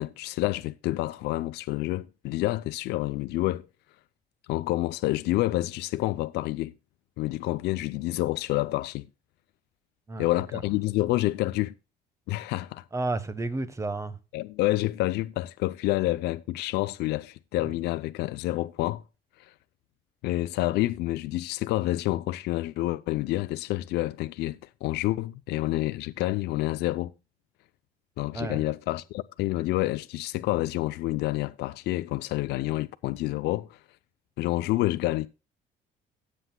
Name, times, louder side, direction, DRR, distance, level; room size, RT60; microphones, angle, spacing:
voice 1, 0.0-3.7 4.5-6.7 7.2-9.1 10.2-11.7 12.3-12.8 14.3-19.0 19.4-19.5 20.2-27.1 28.2-33.8 34.4-35.3, left 17 dB, 80° left, 0.5 m, -28 dB
voice 2, 12.9-14.2 28.3-28.6, right 2 dB, 15° right, 1.2 m, -31 dB
17.5 x 7.8 x 2.2 m
cardioid pair, 110°, 17 cm